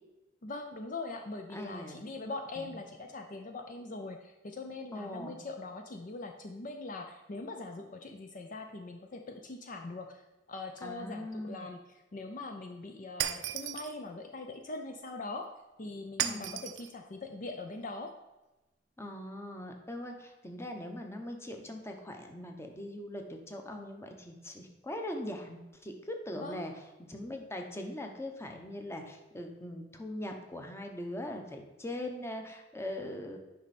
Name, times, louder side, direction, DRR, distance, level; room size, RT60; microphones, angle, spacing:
voice 1, 0.4-15.5 15.8-18.1 26.3-26.6, left 3 dB, 45° left, 5 dB, 0.6 m, -42 dB
voice 2, 1.5-2.0 2.6-2.7 4.9-5.4 10.8-11.7 16.2-16.5 19.0-26.7 27.1-33.4, left 1 dB, 15° left, 3 dB, 0.9 m, -41 dB
Shatter, 13.2-14.0 16.2-16.9, right 10 dB, 85° right, 0.5 m, -34 dB
9.2 x 5.4 x 4.2 m, 1.0 s
head